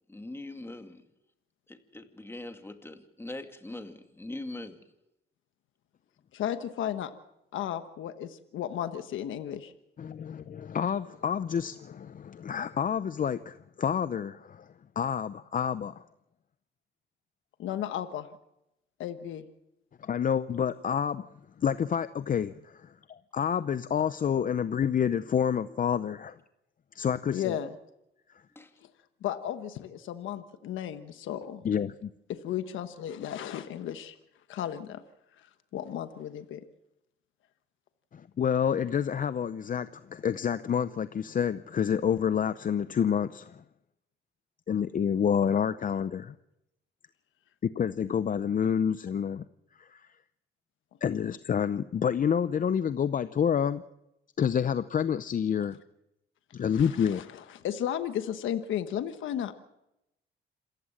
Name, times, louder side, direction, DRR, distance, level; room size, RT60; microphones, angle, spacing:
voice 1, 0.1-1.0 1.7-4.8 28.6-28.7, left 2 dB, 10° left, 6 dB, 2.4 m, -41 dB
voice 2, 6.3-7.1 7.5-9.7 17.6-18.3 19.0-19.5 27.3-27.7 28.8-28.9 29.2-31.7 32.3-34.2 34.5-35.0 35.4-36.6 56.7-59.5, left 10 dB, 80° left, 9 dB, 1.2 m, -34 dB
voice 3, 10.0-14.7 15.0-16.0 20.0-21.3 21.6-26.4 26.9-27.6 31.6-32.1 38.1-43.6 44.7-46.3 47.6-49.4 49.8-50.1 51.0-53.8 54.4-55.8 56.5-57.2, left 8 dB, 45° left, 14 dB, 0.7 m, -28 dB
27.5 x 15.0 x 7.4 m, 0.87 s
cardioid pair, 90°, 20 cm